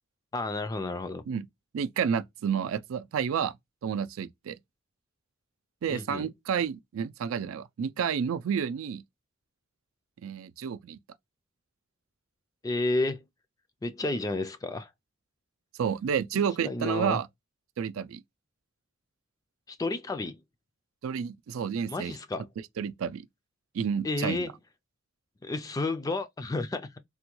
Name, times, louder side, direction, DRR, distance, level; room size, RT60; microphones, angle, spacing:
voice 1, 0.3-1.2 5.9-6.3 12.6-13.2 13.8-14.9 16.3-17.2 19.7-20.4 21.9-22.5 24.0-24.5 25.4-26.9, left 2 dB, 15° left, 0.3 m, -31 dB
voice 2, 1.7-3.5 3.8-4.6 5.8-9.0 10.2-11.0 15.8-17.3 17.8-18.2 21.0-22.1 22.8-23.3 23.7-24.4, right 7 dB, 90° right, 0.4 m, -30 dB
3.4 x 2.2 x 2.9 m
head